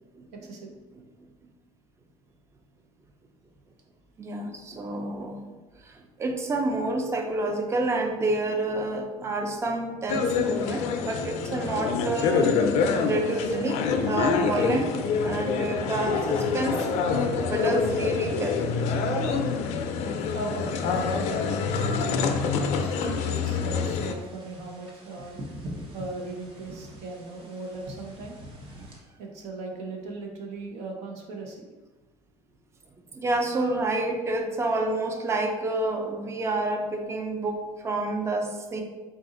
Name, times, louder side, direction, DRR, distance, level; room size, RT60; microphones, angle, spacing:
voice 1, 0.3-0.7 20.3-21.6 22.1-25.4 25.9-28.4 29.2-31.7, right 2 dB, 70° right, 1 dB, 0.9 m, -37 dB
voice 2, 4.2-5.6 5.9-6.0 6.2-12.5 13.0-13.8 14.0-14.9 15.2-16.8 17.4-18.6 33.1-38.8, right 2 dB, 20° right, 4 dB, 0.5 m, -28 dB
sound 1, 10.1-24.1, left 5 dB, 70° left, 0.4 m, -26 dB
sound 2, 21.0-29.0, equal, 45° right, 1.0 m, -44 dB
4.0 x 2.5 x 3.8 m, 1.2 s
cardioid pair, 110°, 12 cm